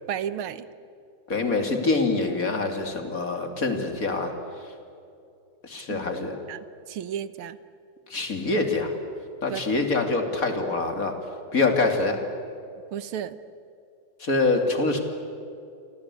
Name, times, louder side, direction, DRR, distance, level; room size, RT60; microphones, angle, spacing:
voice 1, 0.1-0.7 5.9-6.0 6.5-7.6 9.5-9.6 12.9-13.4, right 9 dB, 80° right, 14 dB, 1.8 m, -33 dB
voice 2, 1.3-4.3 5.6-6.4 8.1-8.9 9.4-11.1 11.5-12.2 14.2-15.0, left 3 dB, 40° left, 5 dB, 3.1 m, -25 dB
29.5 x 24.0 x 8.4 m, 2.6 s
omnidirectional pair, 2.3 m